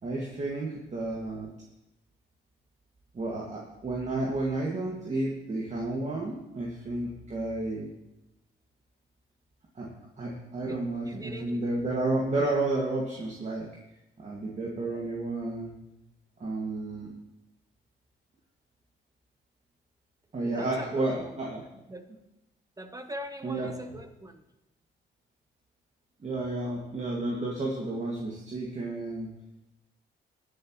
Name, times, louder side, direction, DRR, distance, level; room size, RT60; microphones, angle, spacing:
voice 1, 0.0-1.5 3.1-7.9 9.8-9.9 10.2-13.7 14.2-15.7 16.4-17.1 20.3-21.6 23.4-23.7 26.2-29.3, right 2 dB, 35° right, -3 dB, 2.1 m, -31 dB
voice 2, 10.6-11.6 20.5-21.4 21.9-22.1 22.8-24.4, right 1 dB, 15° right, 7 dB, 1.0 m, -41 dB
21.5 x 7.9 x 3.1 m, 0.92 s
cardioid pair, 90°, 20 cm